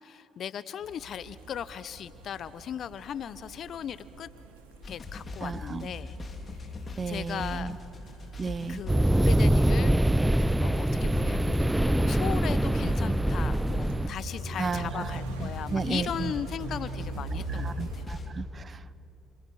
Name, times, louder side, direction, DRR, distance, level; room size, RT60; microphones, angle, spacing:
voice 1, 0.0-4.3 4.9-6.2 7.1-7.7 8.7-9.9 10.6-18.0, left 9 dB, 55° left, 15 dB, 0.8 m, -37 dB
sound 1, 0.8-18.1, right 2 dB, 80° right, 2.6 m, -42 dB
sound 2, 4.8-18.3, left 3 dB, 35° left, 3.4 m, -39 dB
voice 2, 5.4-5.9 7.0-7.8 8.4-8.8 14.6-16.3 17.5-19.0, right 5 dB, 35° right, 17 dB, 0.8 m, -34 dB
sound 3, 8.9-14.1, right 1 dB, 10° right, 0.5 m, -24 dB
28.5 x 25.5 x 6.5 m, 2.9 s
hypercardioid pair, 50°, 0 cm